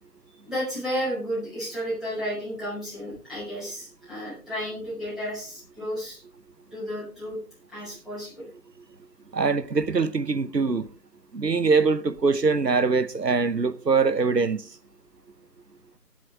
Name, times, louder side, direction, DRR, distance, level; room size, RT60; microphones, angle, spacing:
voice 1, 0.3-6.2 6.7-7.4 7.7-8.5, equal, ahead, 6.9 m, -32 dB
voice 2, 9.3-10.9 11.3-14.6, right 4 dB, 90° right, 1.0 m, -23 dB
19.5 x 7.6 x 3.7 m
figure-of-eight pair, 145°, 48 cm